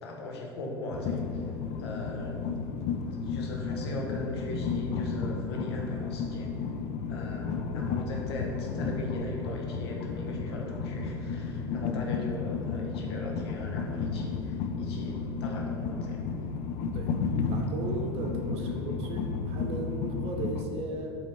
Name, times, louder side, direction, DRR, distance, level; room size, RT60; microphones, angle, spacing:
voice 1, 0.0-1.5 1.8-2.4 3.1-6.5 7.1-16.2 18.6-18.8, left 1 dB, 70° left, 0 dB, 1.1 m, -39 dB
Train, 0.9-20.6, left 5 dB, 50° left, 0.5 m, -33 dB
voice 2, 17.5-21.2, right 2 dB, 45° right, 2 dB, 0.8 m, -36 dB
7.6 x 3.2 x 4.5 m, 2.6 s
figure-of-eight pair, 75°, 14 cm